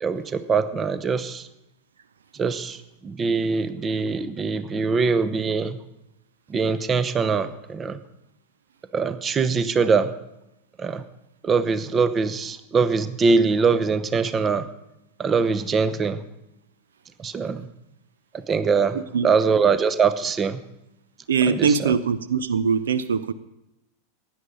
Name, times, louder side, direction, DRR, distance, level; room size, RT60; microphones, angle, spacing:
voice 1, 0.0-1.5 2.4-5.8 6.5-8.0 8.9-10.1 10.8-11.0 11.4-14.6 15.2-16.2 17.2-17.7 18.3-20.6 21.4-22.0, right 5 dB, 20° right, 13 dB, 0.9 m, -23 dB
voice 2, 18.9-19.3 21.3-23.3, right 6 dB, 65° right, 15 dB, 0.6 m, -22 dB
16.0 x 10.5 x 5.3 m, 0.87 s
figure-of-eight pair, 90°, 0 cm